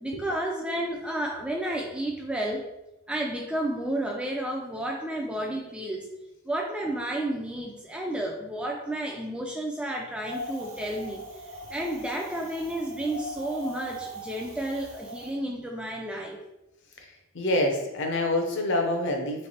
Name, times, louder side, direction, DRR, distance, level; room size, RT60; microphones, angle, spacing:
voice 1, 0.0-2.7 3.1-6.1 6.5-11.2 11.7-16.4, right 1 dB, 5° right, 0 dB, 0.3 m, -31 dB
Wind, 10.2-15.3, equal, 70° right, 1.0 m, -40 dB
voice 2, 17.0-19.5, left 1 dB, 55° left, 2 dB, 0.7 m, -27 dB
3.3 x 3.2 x 4.2 m, 0.94 s
head